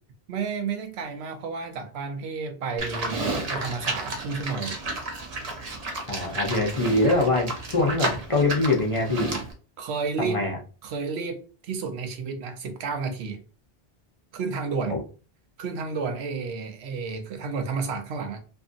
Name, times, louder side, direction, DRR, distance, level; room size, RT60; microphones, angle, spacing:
voice 1, 0.3-4.7 9.8-10.4 10.8-13.4 14.3-15.0 15.6-18.4, right 4 dB, 85° right, 0.9 m, -31 dB
Livestock farm animals working animals, 2.8-9.5, right 2 dB, 45° right, 0.6 m, -32 dB
voice 2, 6.1-9.3 10.2-10.6 14.9-15.0, left 2 dB, 40° left, 0.5 m, -23 dB
2.5 x 2.5 x 2.5 m
omnidirectional pair, 1.1 m